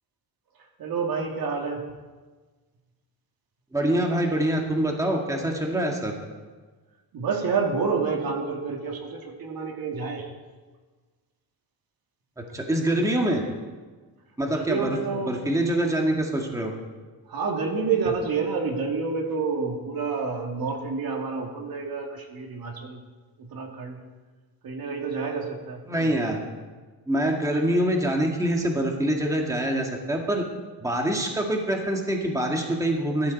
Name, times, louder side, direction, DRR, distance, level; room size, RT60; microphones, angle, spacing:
voice 1, 0.6-1.8 7.1-10.3 14.5-15.3 17.3-23.0 23.4-24.0 24.6-26.3 27.6-27.8, right 5 dB, 55° right, 1 dB, 2.7 m, -29 dB
voice 2, 3.7-6.1 12.4-13.4 14.4-15.0 15.3-16.7 25.9-26.4 27.1-30.4 30.8-33.3, right 1 dB, 10° right, 0 dB, 2.2 m, -25 dB
20.5 x 12.5 x 4.3 m, 1.3 s
cardioid pair, 115°, 41 cm